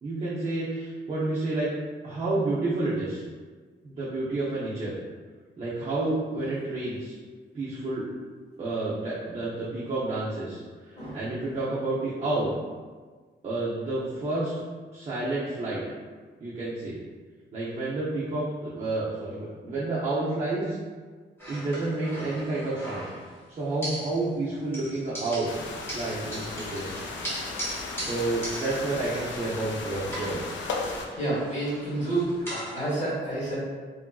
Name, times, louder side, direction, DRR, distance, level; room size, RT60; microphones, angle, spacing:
voice 1, 0.0-1.7 2.0-3.2 3.8-4.9 5.6-7.2 7.5-8.1 8.6-12.5 13.4-14.5 14.9-15.8 16.4-17.0 17.5-20.8 21.5-23.1 23.5-25.6 25.9-27.0 28.0-30.6, right 2 dB, 35° right, -8 dB, 0.4 m, -30 dB
voice 2, 10.9-11.3 31.2-33.6, right 2 dB, 35° left, -8 dB, 1.3 m, -29 dB
sound 1, 21.4-23.4 23.8-24.5 24.7-29.7 30.0-32.8, equal, 10° left, 0.9 m, -39 dB
sound 2, 25.5-31.1, left 3 dB, 70° left, 0.4 m, -36 dB
2.9 x 2.4 x 2.2 m, 1.5 s
wide cardioid pair, 165°, 20 cm